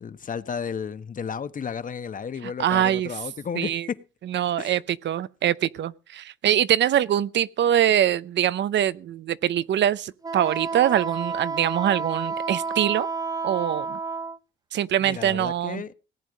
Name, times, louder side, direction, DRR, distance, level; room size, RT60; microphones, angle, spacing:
voice 1, 0.0-4.0 4.6-4.8 15.0-15.9, left 6 dB, 40° left, 1.2 m, -33 dB
voice 2, 2.6-3.1 3.6-3.9 4.3-13.1 13.4-14.0 14.7-15.8, right 11 dB, 65° right, 0.7 m, -23 dB
Wind instrument woodwind instrument, 10.2-14.4, right 4 dB, 20° right, 0.6 m, -30 dB
18.0 x 9.2 x 5.2 m
cardioid pair, 90°, 20 cm